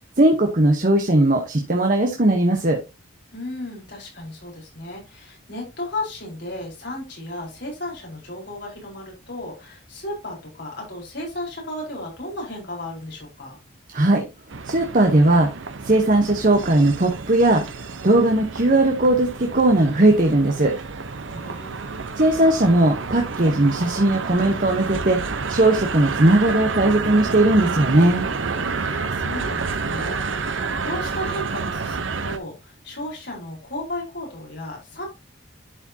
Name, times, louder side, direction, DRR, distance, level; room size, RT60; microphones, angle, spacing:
voice 1, 0.2-2.8 13.9-14.2 14.6-15.5 15.8-17.6 18.0-20.7 22.2-25.2 25.5-28.2, right 1 dB, 40° right, 3 dB, 1.0 m, -18 dB
voice 2, 3.3-13.6 21.3-22.0 28.7-35.1, left 1 dB, 55° left, -2 dB, 4.2 m, -34 dB
sound 1, 14.5-32.4, right 4 dB, 70° right, 0.8 m, -29 dB
11.0 x 5.0 x 2.8 m, 0.25 s
head